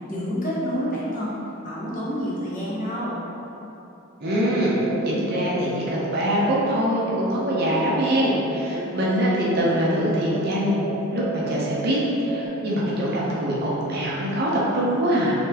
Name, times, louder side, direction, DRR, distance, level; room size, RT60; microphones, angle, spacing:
voice 1, 0.1-1.3 1.6-3.2, equal, 40° left, -8 dB, 0.9 m, -28 dB
voice 2, 4.2-4.8 5.0-10.8 11.1-15.3, equal, 50° right, -5 dB, 0.7 m, -23 dB
sound 1, 4.2-12.5, right 3 dB, 90° right, 0.8 m, -33 dB
4.2 x 3.2 x 2.9 m, 2.9 s
head